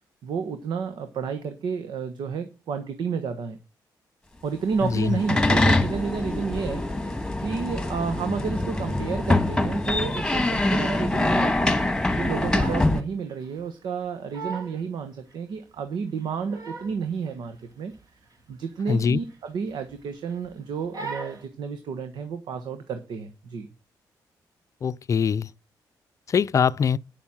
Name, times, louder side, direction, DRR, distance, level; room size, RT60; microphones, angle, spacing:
voice 1, 0.2-3.6 4.4-11.8 12.1-17.9 18.5-23.7, right 6 dB, 75° right, 1.3 m, -31 dB
sound 1, 4.7-13.0, left 2 dB, 10° left, 1.4 m, -24 dB
voice 2, 4.8-5.2 18.9-19.2 24.8-25.5 26.3-27.0, left 6 dB, 45° left, 0.5 m, -23 dB
Crying sobbing, 12.1-13.0 13.3-13.5 14.0-14.1 14.3-14.8 15.3-15.4 16.2-17.0 17.3-17.6 17.9-18.0 18.4-18.6 19.3-19.9 20.3-20.5 20.9-21.4, right 3 dB, 50° right, 2.7 m, -38 dB
9.3 x 7.1 x 7.2 m
cardioid pair, 95°, 8 cm